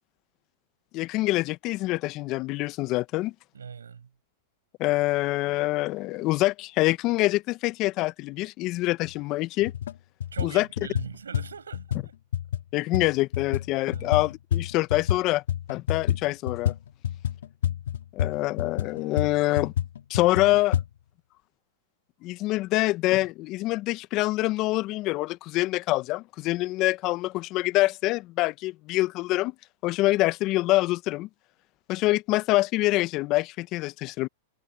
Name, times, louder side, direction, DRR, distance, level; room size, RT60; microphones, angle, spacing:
voice 1, 0.9-3.3 4.8-9.7 10.4-10.7 12.7-15.4 15.7-16.7 18.1-19.7 20.1-20.8 22.2-29.5 29.8-31.3 31.9-34.3, left 19 dB, 45° left, 1.1 m, -25 dB
voice 2, 3.5-4.1 10.3-12.1 13.8-14.1, right 7 dB, 90° right, 7.1 m, -41 dB
sound 1, 9.1-9.2 9.6-9.9 10.2-15.2 15.5-20.9, left 10 dB, 75° left, 3.1 m, -29 dB
hypercardioid pair, 105°, 0 cm